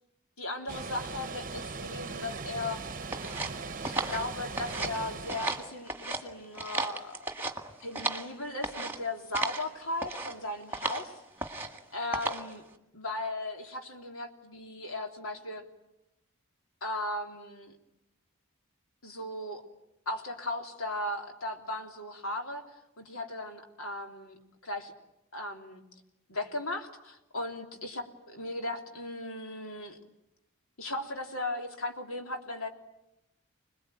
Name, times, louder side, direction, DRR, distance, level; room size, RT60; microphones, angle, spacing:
voice 1, 0.4-2.8 3.8-7.2 7.8-11.5 11.9-12.6 12.9-15.7 16.8-17.7 19.0-19.6 20.0-22.6 23.0-24.4 24.6-24.9 25.3-25.8 26.3-30.0 30.8-32.7, left 2 dB, 70° left, 3 dB, 3.4 m, -37 dB
Water, 0.7-5.7, right 4 dB, 35° right, 0.9 m, -39 dB
sound 1, 3.1-5.0 5.3-6.2 6.5-8.3 8.6-9.0 9.3-9.7 10.0-10.3 10.7-11.1 11.4-11.8 12.1-12.5, right 2 dB, 10° right, 1.9 m, -34 dB
26.5 x 21.0 x 9.2 m, 0.91 s
head